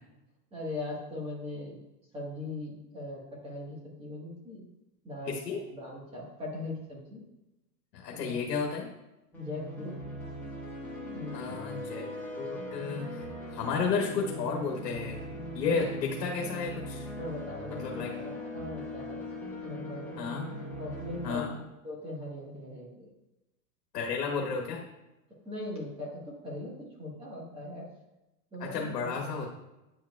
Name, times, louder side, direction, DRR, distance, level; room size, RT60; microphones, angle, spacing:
voice 1, 0.5-1.8 2.1-4.6 5.0-7.2 8.1-8.4 9.4-10.0 11.1-11.6 15.7-15.9 17.2-19.2 19.6-20.3 20.8-23.1 25.4-27.9 28.5-29.3, left 2 dB, 10° right, -4 dB, 1.6 m, -40 dB
voice 2, 5.3-5.6 7.9-8.9 11.3-12.1 12.4-15.3 15.5-17.1 17.7-18.1 20.2-20.5 21.2-21.5 23.9-24.8 28.6-29.5, left 5 dB, 80° left, 0 dB, 1.4 m, -32 dB
sound 1, 9.3-21.3, left 1 dB, 5° left, 1.7 m, -40 dB
9.1 x 4.6 x 2.4 m, 0.97 s
hypercardioid pair, 135°, 47 cm